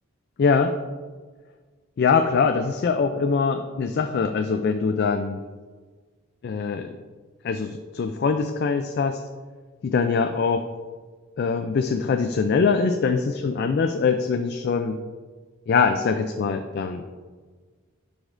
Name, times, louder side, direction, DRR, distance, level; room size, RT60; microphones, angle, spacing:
voice 1, 0.4-0.7 2.0-5.4 6.4-6.9 7.4-9.2 9.8-10.7 11.4-15.0 15.7-17.0, left 5 dB, 50° left, 7 dB, 0.3 m, -23 dB
9.7 x 5.1 x 2.5 m, 1.4 s
head